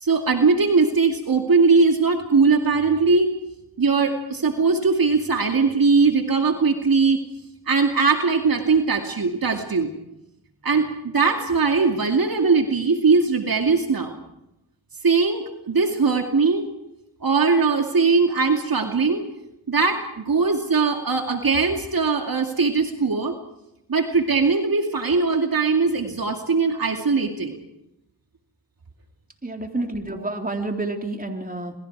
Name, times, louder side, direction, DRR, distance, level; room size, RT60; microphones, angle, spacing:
voice 1, 0.0-3.3 3.8-7.2 7.7-9.9 10.6-14.2 15.0-16.7 17.2-19.2 19.7-23.4 23.9-27.6, right 4 dB, 60° right, 4 dB, 2.5 m, -20 dB
voice 2, 29.4-31.7, right 2 dB, 20° right, 3 dB, 3.7 m, -29 dB
27.5 x 22.5 x 4.8 m, 0.85 s
cardioid pair, 50°, 40 cm